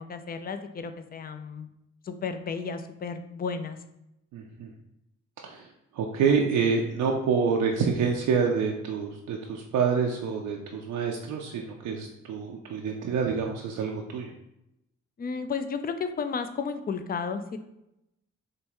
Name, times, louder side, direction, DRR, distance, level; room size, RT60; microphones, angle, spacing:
voice 1, 0.0-1.7 2.0-3.8 15.2-17.6, left 5 dB, 30° left, 9 dB, 0.4 m, -33 dB
voice 2, 4.3-4.7 5.4-14.3, right 5 dB, 70° right, 0 dB, 0.5 m, -27 dB
4.9 x 2.2 x 3.0 m, 0.85 s
hypercardioid pair, 40°, 32 cm